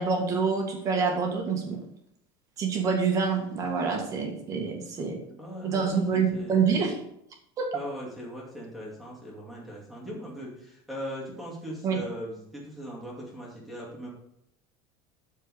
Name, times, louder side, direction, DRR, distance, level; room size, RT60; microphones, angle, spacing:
voice 1, 0.0-1.8 2.6-5.2 5.6-7.0 7.6-7.8 11.8-12.1, right 5 dB, 25° right, 2 dB, 1.8 m, -26 dB
voice 2, 5.3-6.7 7.7-14.1, equal, ahead, -4 dB, 2.4 m, -39 dB
13.0 x 4.7 x 4.9 m, 0.75 s
cardioid pair, 175°, 12 cm